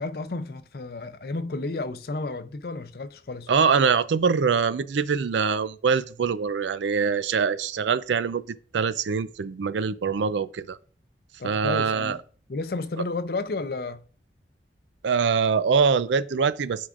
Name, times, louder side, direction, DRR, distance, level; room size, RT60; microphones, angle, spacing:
voice 1, 0.0-3.5 11.4-12.2 12.5-14.0, left 3 dB, 55° left, 0.5 m, -32 dB
voice 2, 3.5-8.4 8.7-10.8 11.4-12.2 15.0-16.9, right 5 dB, 90° right, 0.4 m, -23 dB
13.5 x 4.8 x 2.5 m
head